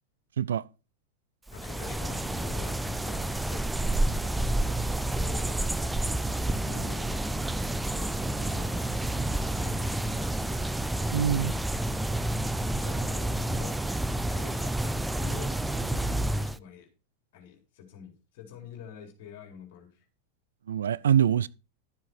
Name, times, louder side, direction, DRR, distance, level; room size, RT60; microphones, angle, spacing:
voice 1, 1.5-10.5 12.5-16.9 17.3-20.1, left 8 dB, 50° left, 4.1 m, -48 dB
sound 1, 1.5-16.6, right 1 dB, 5° right, 0.6 m, -29 dB
voice 2, 11.1-11.5 20.7-21.5, right 9 dB, 65° right, 0.5 m, -24 dB
12.5 x 7.5 x 4.6 m
figure-of-eight pair, 90°, 0 cm